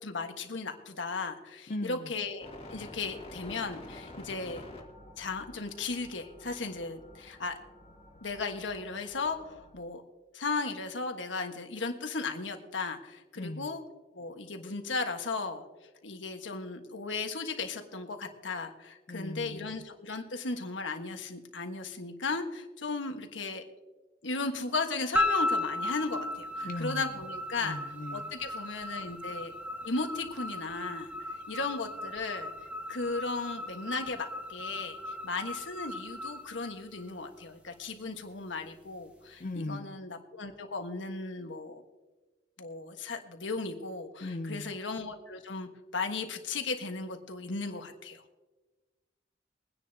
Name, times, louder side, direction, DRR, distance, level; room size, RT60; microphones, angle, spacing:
voice 1, 0.0-4.6 5.2-7.6 8.2-10.0 10.3-13.8 14.1-15.6 16.0-23.6 24.2-27.8 28.1-29.5 29.8-31.1 31.5-32.5 32.9-41.8 42.6-48.2, left 3 dB, 85° left, 5 dB, 1.4 m, -36 dB
voice 2, 1.7-2.1 13.4-13.7 19.1-19.8 26.6-27.2 27.6-28.3 39.4-40.0 44.2-44.8, left 2 dB, 45° left, 6 dB, 0.6 m, -38 dB
sound 1, 2.4-9.8, left 1 dB, 30° left, 2.2 m, -49 dB
sound 2, 25.1-37.4, left 1 dB, 10° right, 1.4 m, -36 dB
23.0 x 9.9 x 2.8 m, 1.2 s
head